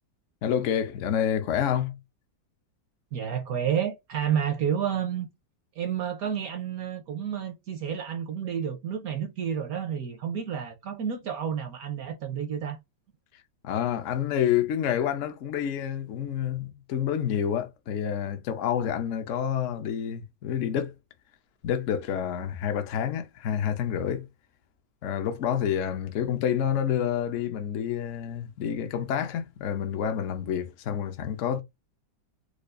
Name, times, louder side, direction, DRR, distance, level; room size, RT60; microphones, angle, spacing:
voice 1, 0.4-2.0 13.6-20.9 21.6-24.3 25.0-31.6, left 9 dB, 65° left, 0.7 m, -28 dB
voice 2, 3.1-5.3 5.8-12.8, right 8 dB, 65° right, 0.9 m, -30 dB
4.7 x 2.3 x 2.4 m
omnidirectional pair, 2.0 m